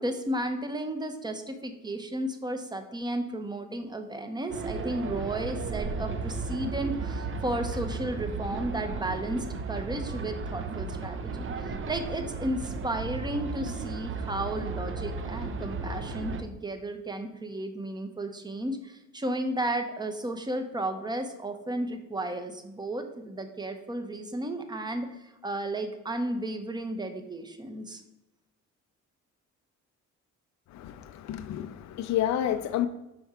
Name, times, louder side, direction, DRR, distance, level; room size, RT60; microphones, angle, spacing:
voice 1, 0.0-28.0, right 1 dB, 15° right, 0.8 m, -33 dB
sound 1, 4.5-16.4, right 3 dB, 45° right, 0.7 m, -34 dB
voice 2, 30.7-32.9, left 11 dB, 65° left, 0.5 m, -30 dB
5.5 x 4.4 x 4.8 m
cardioid pair, 90°, 30 cm